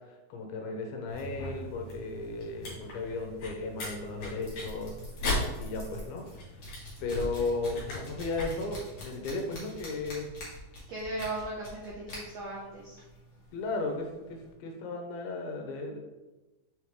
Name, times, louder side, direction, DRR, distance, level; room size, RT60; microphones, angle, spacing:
voice 1, 0.3-4.9 5.6-6.2 7.0-10.3 13.5-16.0, left 3 dB, 85° left, 2 dB, 2.8 m, -35 dB
sound 1, 1.1-8.4, left 1 dB, 55° left, 3.3 m, -38 dB
sound 2, 1.9-14.5, left 1 dB, 35° left, 2.3 m, -47 dB
voice 2, 10.9-13.0, right 2 dB, 85° right, -2 dB, 1.5 m, -37 dB
6.8 x 4.8 x 3.5 m, 1.1 s
omnidirectional pair, 4.4 m